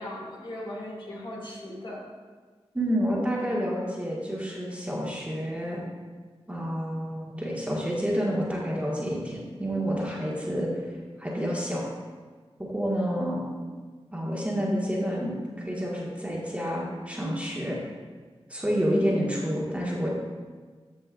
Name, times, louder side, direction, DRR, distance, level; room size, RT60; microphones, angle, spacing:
voice 1, 0.0-2.0 12.9-13.2, left 1 dB, 55° left, -5 dB, 2.2 m, -38 dB
voice 2, 2.7-5.8 6.5-10.8 11.2-11.8 12.6-13.4 14.1-17.8 18.5-20.1, equal, 10° right, -5 dB, 1.6 m, -29 dB
14.0 x 5.4 x 2.5 m, 1.5 s
wide cardioid pair, 70°, 11 cm